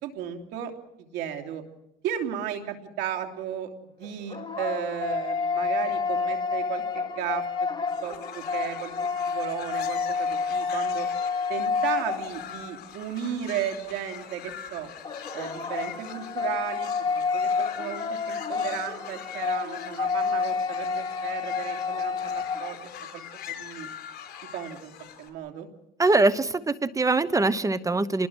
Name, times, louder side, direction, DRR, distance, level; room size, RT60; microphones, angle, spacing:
voice 1, 0.0-0.7 1.1-1.6 2.0-3.7 4.0-7.4 8.0-11.1 11.5-14.9 15.3-16.9 17.3-22.8 23.1-23.2 23.5-23.9 24.5-25.7, right 9 dB, 90° right, 4 dB, 3.1 m, -34 dB
sound 1, 4.0-12.7 15.0-22.8, left 5 dB, 30° left, 3.1 m, -29 dB
sound 2, 7.9-25.3, left 9 dB, 70° left, 4.3 m, -43 dB
voice 2, 26.0-28.3, right 2 dB, 20° right, 14 dB, 1.0 m, -23 dB
29.0 x 20.5 x 6.3 m, 0.83 s
cardioid pair, 110°, 17 cm